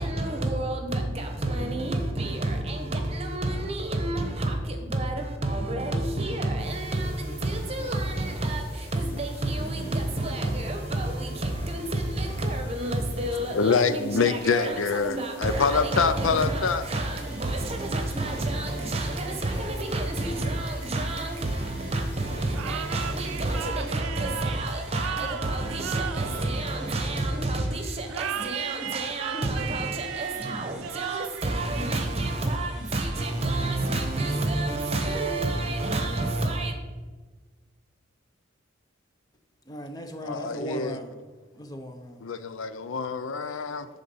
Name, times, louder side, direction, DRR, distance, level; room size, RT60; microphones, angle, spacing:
voice 1, 0.0-36.7, right 2 dB, 30° right, 0.9 m, -29 dB
sound 1, 6.6-23.7, left 1 dB, 45° left, 2.4 m, -48 dB
voice 2, 13.5-16.8 40.2-41.0 42.2-43.9, left 5 dB, 80° left, 0.5 m, -25 dB
sound 2, 16.6-36.1, right 1 dB, 5° right, 1.2 m, -50 dB
sound 3, 22.5-27.3 28.1-32.5, right 9 dB, 90° right, 0.4 m, -36 dB
voice 3, 39.7-41.1 41.6-42.2, equal, 20° left, 0.6 m, -37 dB
10.5 x 3.7 x 5.5 m
head